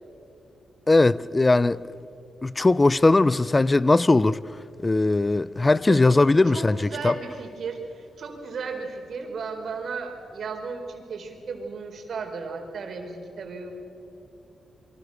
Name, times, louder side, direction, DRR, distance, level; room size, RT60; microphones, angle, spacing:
voice 1, 0.9-1.8 2.4-4.4 4.8-7.2, left 2 dB, 25° left, 0.6 m, -19 dB
voice 2, 5.9-6.2 6.5-13.7, right 4 dB, 65° right, 4.3 m, -35 dB
28.5 x 23.5 x 6.6 m
cardioid pair, 85°, 0 cm